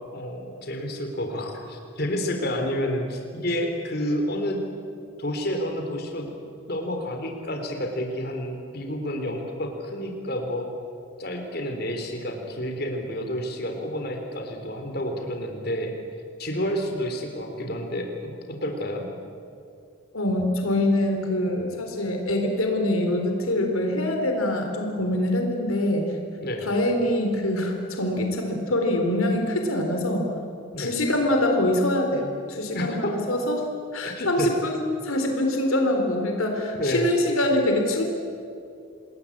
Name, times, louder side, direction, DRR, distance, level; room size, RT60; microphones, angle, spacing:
voice 1, 0.1-4.6 5.2-6.3 6.7-10.7 11.2-15.9 16.4-19.1 26.4-26.7 30.7-30.9 32.7-33.1 34.0-34.5 36.8-37.1, equal, 50° left, 4 dB, 3.6 m, -29 dB
voice 2, 20.1-26.1 26.6-30.3 30.8-38.0, left 1 dB, 90° left, 3 dB, 4.0 m, -24 dB
28.5 x 20.5 x 8.8 m, 2.4 s
head